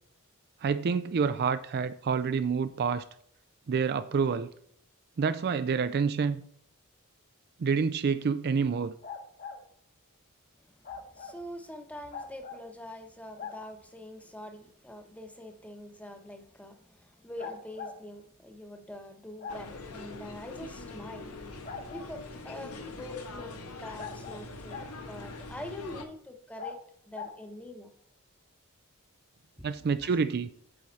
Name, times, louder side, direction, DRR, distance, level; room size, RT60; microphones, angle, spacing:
voice 1, 0.6-3.0 3.7-4.5 5.2-6.4 7.6-8.9 29.6-30.5, right 5 dB, 45° right, 0.4 m, -28 dB
sound 1, 9.0-9.6 10.8-11.4 12.1-12.6 13.4-13.6 15.4-15.5 17.4-18.0 19.4-19.6 21.6-22.3 24.0-24.9 26.6-26.8 27.1-27.4, left 5 dB, 40° left, 1.2 m, -41 dB
voice 2, 11.1-21.3 21.9-24.8 25.1-26.8 27.1-27.9 30.0-30.1, left 1 dB, 5° left, 1.0 m, -44 dB
sound 2, 19.5-26.0, left 3 dB, 90° left, 1.2 m, -43 dB
8.6 x 6.3 x 4.1 m
head